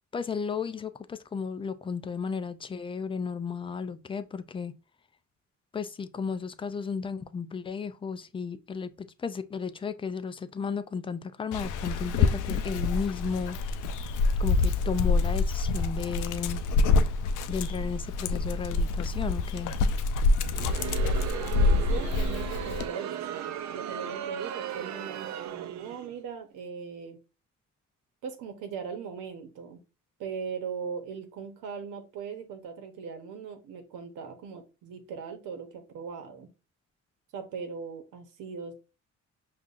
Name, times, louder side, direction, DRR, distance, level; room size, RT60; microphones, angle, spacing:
voice 1, 0.1-4.7 5.7-13.6 14.4-16.6 17.5-19.8, left 5 dB, 20° left, 0.3 m, -34 dB
Dog, 11.5-22.9, left 3 dB, 85° left, 0.5 m, -26 dB
Crowd, 20.4-26.2, right 10 dB, 65° right, 0.5 m, -36 dB
voice 2, 20.8-27.2 28.2-29.8 30.2-36.5 37.3-38.7, right 6 dB, 90° right, 0.9 m, -39 dB
5.3 x 2.4 x 2.4 m
cardioid pair, 90°, 30 cm